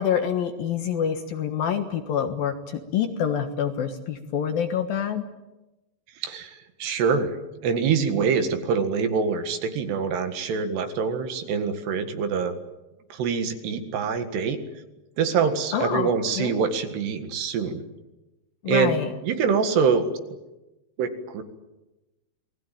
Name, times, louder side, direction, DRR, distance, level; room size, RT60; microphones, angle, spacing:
voice 1, 0.0-5.2 15.7-16.1 16.4-16.5 18.6-19.1, left 8 dB, 65° left, 7 dB, 2.7 m, -26 dB
voice 2, 6.2-12.6 13.1-14.6 15.2-17.8 18.7-19.0 19.2-20.1 21.0-21.4, right 6 dB, 65° right, 8 dB, 3.7 m, -25 dB
28.5 x 20.5 x 9.1 m, 1.0 s
omnidirectional pair, 5.4 m